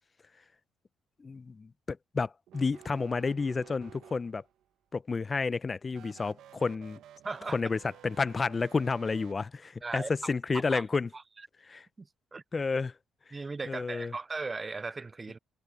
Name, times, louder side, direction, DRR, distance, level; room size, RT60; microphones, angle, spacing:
voice 1, 1.2-4.4 4.9-7.0 7.5-11.1 11.7-11.8 12.5-12.9 13.7-14.1, left 4 dB, 30° left, 0.6 m, -31 dB
sound 1, 2.5-4.6 5.9-9.3, right 11 dB, 80° right, 1.0 m, -53 dB
voice 2, 7.2-7.6 9.8-10.3 10.7-10.8 11.1-11.2 12.0-12.1 12.3-12.4 13.3-15.4, right 3 dB, 25° right, 0.3 m, -37 dB
cardioid pair, 90°, 0 cm